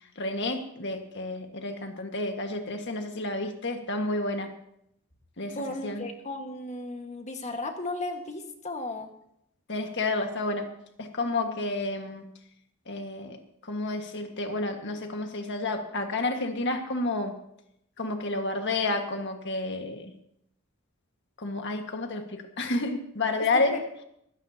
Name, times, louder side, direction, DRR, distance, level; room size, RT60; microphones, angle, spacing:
voice 1, 0.2-4.5 5.4-5.6 5.8-6.0 9.7-10.7 11.0-12.2 12.9-13.4 13.6-17.3 18.0-20.1 21.4-23.7, left 2 dB, 55° left, 4 dB, 1.7 m, -30 dB
voice 2, 5.6-9.1 23.4-23.8, left 2 dB, 30° left, 4 dB, 1.6 m, -35 dB
20.0 x 16.5 x 2.9 m, 0.75 s
head